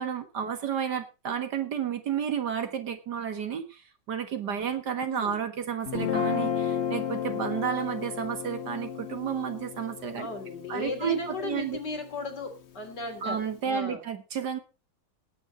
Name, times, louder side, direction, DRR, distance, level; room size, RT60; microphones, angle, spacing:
voice 1, 0.0-3.8 4.1-10.3 10.7-11.8 13.2-14.6, right 8 dB, 65° right, 8 dB, 2.1 m, -31 dB
voice 2, 5.1-5.4 10.2-14.0, left 3 dB, 65° left, 5 dB, 3.7 m, -36 dB
Guitar, 5.9-12.2, left 8 dB, 45° left, 1.2 m, -33 dB
18.0 x 9.4 x 3.9 m, 0.30 s
omnidirectional pair, 2.0 m